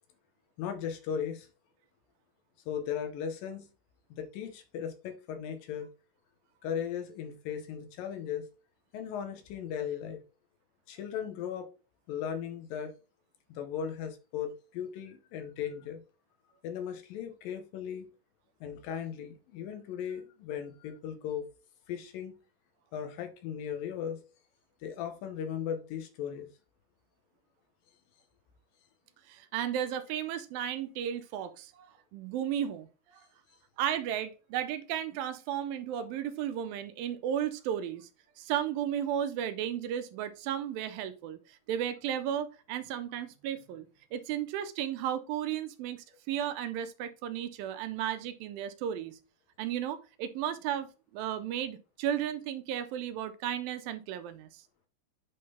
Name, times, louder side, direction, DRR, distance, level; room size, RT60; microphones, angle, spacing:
voice 1, 0.6-1.5 2.7-3.7 4.1-5.9 6.6-8.5 8.9-10.2 10.9-11.7 12.1-12.9 13.5-16.0 16.6-18.1 18.6-21.5 21.9-22.4 22.9-24.2 24.8-26.5, left 8 dB, 75° left, 2.5 m, -37 dB
voice 2, 29.3-33.3 33.8-38.1 38.4-49.2 49.6-50.9 51.1-54.6, right 10 dB, 80° right, 2.3 m, -34 dB
8.4 x 3.8 x 4.2 m
omnidirectional pair, 4.3 m